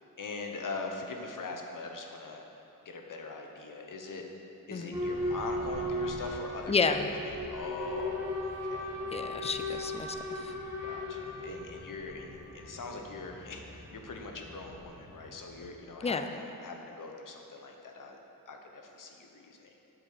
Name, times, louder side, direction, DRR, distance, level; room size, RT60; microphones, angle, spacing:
voice 1, 0.2-2.4 2.8-4.2 4.7-6.7 7.0-8.9 10.8-18.2 18.5-19.9, left 3 dB, 60° left, 3 dB, 1.1 m, -42 dB
Boat Water vehicle / Alarm, 4.9-15.6, left 1 dB, 10° right, 2.2 m, -37 dB
voice 2, 6.7-7.1 9.1-10.5 16.0-16.2, left 5 dB, 20° left, 7 dB, 0.4 m, -31 dB
8.5 x 7.5 x 6.6 m, 3.0 s
wide cardioid pair, 165°, 36 cm